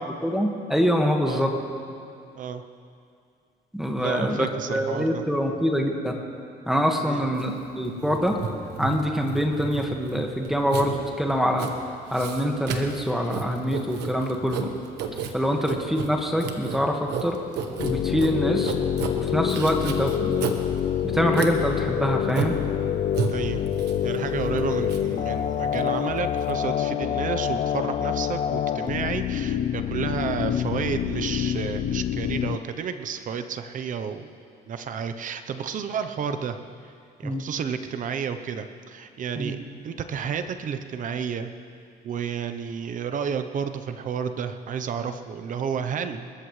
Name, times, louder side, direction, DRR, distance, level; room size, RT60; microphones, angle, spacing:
voice 1, 0.0-1.5 3.7-6.1 6.7-8.4 8.8-11.7 12.1-14.7 15.3-17.4 17.8-18.7 19.2-20.3 21.0-22.6 37.2-37.4 39.4-39.5, equal, ahead, 1 dB, 1.8 m, -25 dB
voice 2, 4.0-5.2 7.0-7.2 15.5-15.6 23.3-23.6 24.0-34.3 34.7-36.6 36.8-36.9 37.2-41.5 42.0-46.3, right 7 dB, 50° right, 8 dB, 0.9 m, -31 dB
Writing, 7.4-26.5, right 6 dB, 80° right, 1.4 m, -34 dB
sound 1, 17.8-32.6, left 10 dB, 50° left, 0.6 m, -26 dB
28.0 x 14.0 x 3.3 m, 2.4 s
cardioid pair, 110°, 17 cm